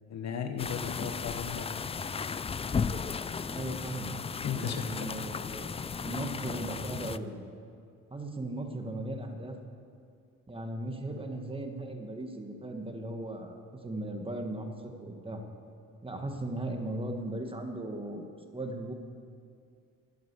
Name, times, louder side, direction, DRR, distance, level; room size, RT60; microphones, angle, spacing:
voice 1, 0.1-1.7 4.4-5.1, left 8 dB, 60° left, 7 dB, 1.1 m, -36 dB
sound 1, 0.6-7.2, left 5 dB, 20° left, 0.3 m, -35 dB
voice 2, 3.5-4.1 4.5-5.7 6.0-7.4 8.1-9.5 10.5-15.4 16.0-18.9, right 1 dB, 20° right, 4 dB, 1.5 m, -37 dB
11.5 x 9.2 x 8.2 m, 2.3 s
cardioid pair, 90°, 30 cm